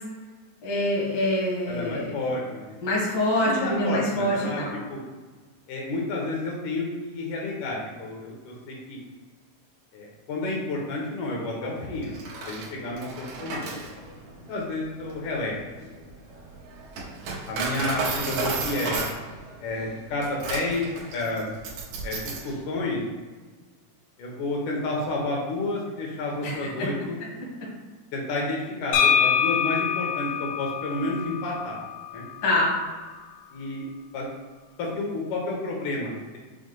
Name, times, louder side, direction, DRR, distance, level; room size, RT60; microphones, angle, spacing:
voice 1, 0.6-2.1 2.8-4.7 26.4-26.5 26.8-26.9 32.4-32.7, left 1 dB, 55° left, -5 dB, 1.2 m, -25 dB
voice 2, 1.7-2.6 3.4-4.6 4.9-5.0 5.7-9.0 9.9-12.2 12.5-14.0 14.5-15.6 16.0-16.1 17.5-19.0 19.6-20.8 21.1-21.5 22.0-23.0 24.2-27.2 28.1-31.8 32.1-32.2 33.5-33.9 34.1-34.3 34.8-36.4, left 2 dB, 75° left, -2 dB, 2.2 m, -30 dB
Coin (dropping), 12.0-22.5, right 3 dB, 85° right, 2.6 m, -33 dB
sound 1, 28.9-32.7, left 7 dB, 90° left, 2.3 m, -25 dB
6.3 x 2.2 x 3.7 m, 1.4 s
omnidirectional pair, 3.9 m